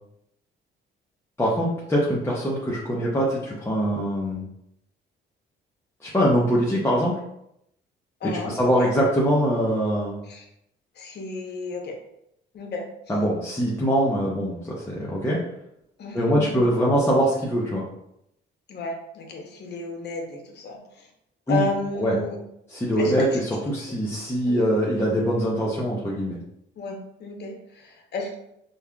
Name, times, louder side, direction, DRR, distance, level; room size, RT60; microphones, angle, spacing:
voice 1, 1.4-4.4 6.0-7.2 8.2-10.2 13.1-15.4 16.1-17.8 21.5-21.7 22.0-22.2 22.7-26.4, equal, 15° left, -6 dB, 0.8 m, -23 dB
voice 2, 8.2-8.9 10.3-10.5 11.0-12.0 12.5-12.9 16.0-16.7 18.7-21.1 21.5-22.4 23.0-23.4 23.9-24.0 24.5-24.7 26.8-28.3, left 3 dB, 60° left, 2 dB, 0.8 m, -33 dB
5.3 x 2.3 x 2.3 m, 0.79 s
cardioid pair, 90°, 20 cm